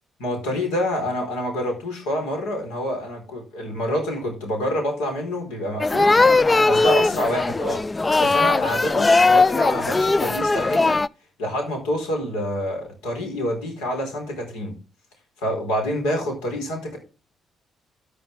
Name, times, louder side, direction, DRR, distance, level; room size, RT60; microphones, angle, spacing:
voice 1, 0.2-6.1 6.7-7.8 8.2-10.9 11.4-14.7 15.4-17.0, left 1 dB, 75° left, 2 dB, 4.2 m, -27 dB
sound 1, 5.8-11.1, left 3 dB, 25° left, 0.4 m, -19 dB
13.5 x 6.3 x 3.6 m, 0.33 s
figure-of-eight pair, 45°, 0 cm